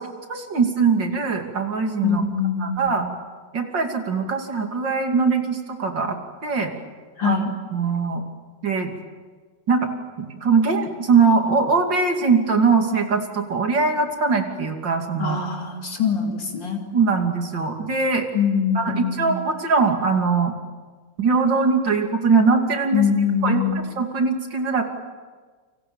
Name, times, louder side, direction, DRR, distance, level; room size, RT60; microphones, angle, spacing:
voice 1, 0.0-2.2 2.6-3.0 3.5-6.2 6.4-6.7 7.2-7.4 7.7-8.2 8.6-9.0 9.7-9.9 10.2-15.4 16.9-18.3 18.8-20.5 21.2-23.1 23.4-23.6 24.0-24.8, right 4 dB, 75° right, 4 dB, 3.4 m, -21 dB
voice 2, 2.0-3.1 7.2-7.5 15.2-16.8 18.3-19.4 22.9-23.8, left 6 dB, 80° left, 1 dB, 3.7 m, -23 dB
29.5 x 25.5 x 7.2 m, 1.5 s
omnidirectional pair, 2.0 m